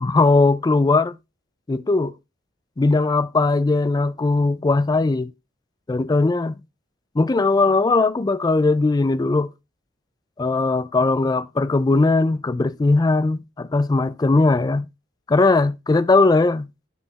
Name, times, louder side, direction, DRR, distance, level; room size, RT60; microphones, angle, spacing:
voice 1, 0.0-1.2 1.7-2.1 2.8-5.3 5.9-6.6 7.2-9.5 10.4-14.9 15.3-16.7, left 3 dB, 20° left, 0.3 m, -19 dB
11.0 x 4.2 x 2.9 m
head